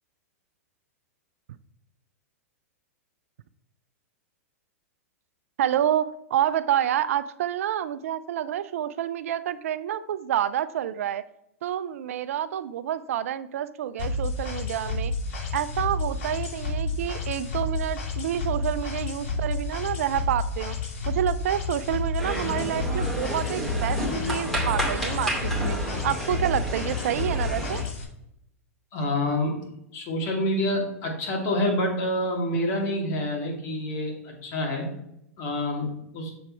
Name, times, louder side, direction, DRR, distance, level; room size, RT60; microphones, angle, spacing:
voice 1, 5.6-11.2 11.6-15.1 15.5-20.8 21.1-24.0 24.3-25.8 26.0-27.8, right 10 dB, 65° right, 15 dB, 0.4 m, -28 dB
sound 1, 14.0-28.0, left 2 dB, 60° left, 3.0 m, -30 dB
sound 2, 22.2-27.9, equal, 5° left, 2.3 m, -31 dB
voice 2, 28.9-29.6 29.9-34.9 35.4-36.3, left 1 dB, 40° left, -1 dB, 2.5 m, -27 dB
7.1 x 4.7 x 4.5 m, 0.80 s
hypercardioid pair, 110°, 8 cm